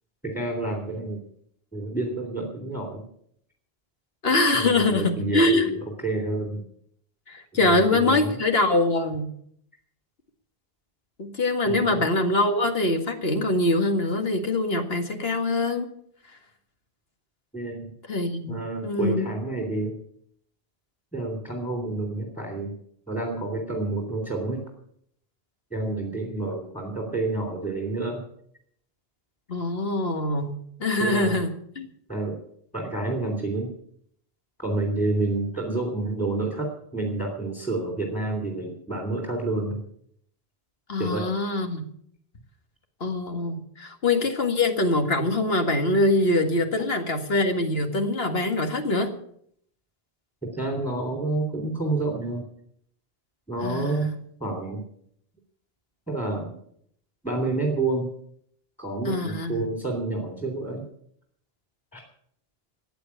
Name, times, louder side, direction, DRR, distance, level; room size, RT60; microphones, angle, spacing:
voice 1, 0.2-1.2 1.7-3.0 4.5-6.6 7.6-8.4 11.7-12.0 17.5-17.9 18.5-19.9 21.1-22.7 23.1-24.6 25.7-28.2 31.0-31.4 32.1-32.4 32.7-33.7 34.6-39.8 41.0-41.3 50.4-52.4 53.5-54.1 54.4-54.8 56.1-56.5 57.2-58.1 58.8-60.8 61.9-62.0, right 2 dB, 5° left, 1 dB, 3.2 m, -29 dB
voice 2, 4.2-5.7 7.3-9.3 11.2-15.9 18.1-19.3 29.5-31.9 40.9-41.8 43.0-49.1 53.6-54.2 59.1-59.7, left 2 dB, 70° left, 5 dB, 2.1 m, -24 dB
14.5 x 9.3 x 8.5 m, 0.67 s
omnidirectional pair, 1.1 m